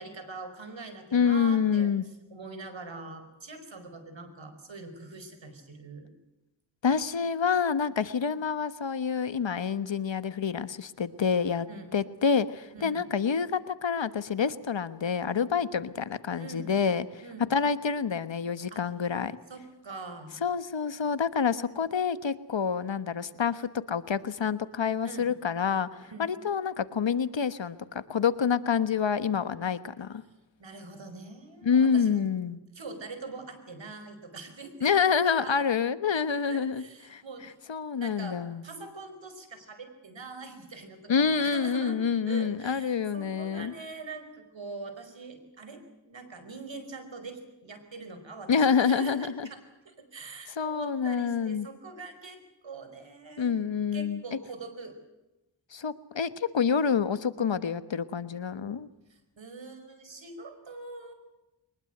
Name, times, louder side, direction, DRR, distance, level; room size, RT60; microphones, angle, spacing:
voice 1, 0.0-1.9 2.3-6.1 11.7-11.9 12.7-13.0 16.4-16.7 17.2-17.5 18.7-18.8 19.5-20.4 25.0-25.3 26.0-26.3 30.6-32.2 32.7-35.7 36.5-37.6 37.9-42.0 42.3-53.5 53.9-55.0 59.1-61.1, right 3 dB, 75° right, 8 dB, 5.0 m, -43 dB
voice 2, 1.1-2.0 6.8-11.7 11.9-17.2 17.5-19.4 20.4-30.2 31.6-32.6 34.8-36.8 37.1-37.2 37.7-38.6 41.1-43.7 48.5-49.5 50.6-51.7 53.4-54.2 55.7-58.9, left 6 dB, 70° left, 13 dB, 1.3 m, -27 dB
23.5 x 21.0 x 7.9 m, 1.0 s
cardioid pair, 50°, 46 cm